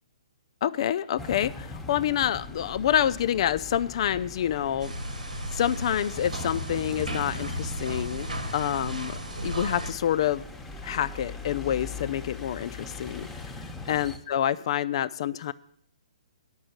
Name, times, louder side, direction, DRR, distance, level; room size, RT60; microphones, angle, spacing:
voice 1, 0.6-4.9 5.5-10.4 10.8-13.3 13.9-15.5, left 10 dB, 50° left, 15 dB, 0.4 m, -27 dB
sound 1, 1.2-14.2, left 3 dB, 5° left, 0.9 m, -40 dB
sound 2, 4.8-9.9, right 1 dB, 85° right, 1.5 m, -35 dB
8.7 x 6.1 x 7.9 m, 0.63 s
figure-of-eight pair, 130°, 4 cm